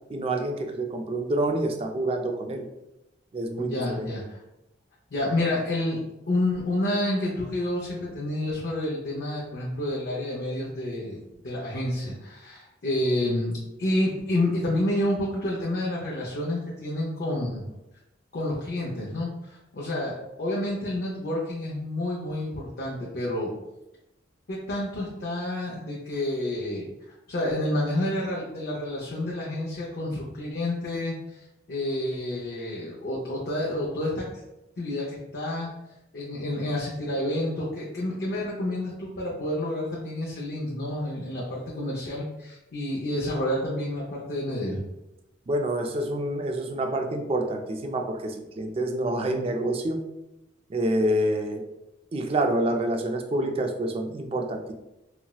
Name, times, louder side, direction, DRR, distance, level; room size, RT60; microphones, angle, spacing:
voice 1, 0.1-2.7 3.3-4.1 45.5-50.0 50.7-51.6 52.1-54.7, right 1 dB, 30° right, 5 dB, 0.3 m, -27 dB
voice 2, 3.6-4.4 5.1-6.0 6.3-17.6 18.3-23.5 24.5-26.9 27.3-31.4 31.7-34.2 34.8-35.7 36.1-44.8, left 1 dB, 60° left, -5 dB, 0.6 m, -29 dB
4.1 x 2.0 x 2.2 m, 0.92 s
head